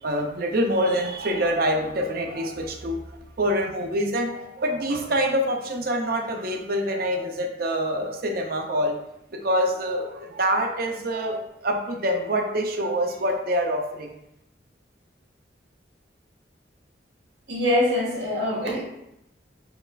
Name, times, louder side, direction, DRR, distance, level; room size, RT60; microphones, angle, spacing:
voice 1, 0.0-9.0 9.3-14.2, equal, 55° right, 3 dB, 0.6 m, -26 dB
voice 2, 17.5-18.8, left 1 dB, 75° right, -3 dB, 1.4 m, -23 dB
6.9 x 3.1 x 2.3 m, 0.84 s
head